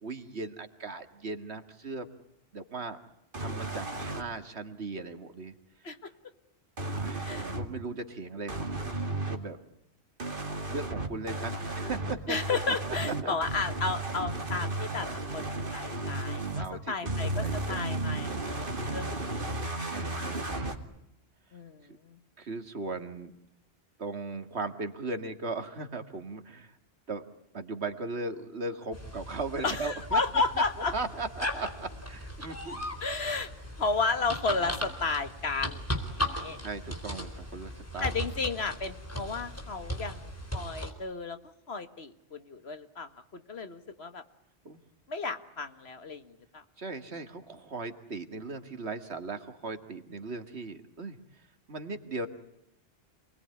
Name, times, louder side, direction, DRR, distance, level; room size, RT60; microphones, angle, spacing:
voice 1, 0.0-2.1 2.5-3.0 3.4-5.5 6.8-9.6 10.7-12.4 13.0-13.3 16.6-17.9 19.9-20.8 22.4-23.3 24.0-26.8 27.1-27.2 27.5-30.2 30.6-30.7 30.9-33.0 36.6-38.3 44.6-44.8 46.8-51.2 51.7-52.3, right 3 dB, 80° right, 7 dB, 2.2 m, -38 dB
sound 1, 3.3-4.2 6.8-7.7 8.5-9.4 10.2-16.7 17.1-20.8, right 2 dB, 55° right, 2.6 m, -34 dB
voice 2, 12.3-19.7 21.5-22.2 29.6-30.9 33.0-33.5 33.8-36.6 38.0-44.2 45.1-46.6, left 4 dB, 70° left, 9 dB, 2.0 m, -33 dB
sound 2, 28.9-40.9, equal, 15° left, 4.0 m, -38 dB
28.5 x 20.5 x 9.7 m, 0.80 s
omnidirectional pair, 1.1 m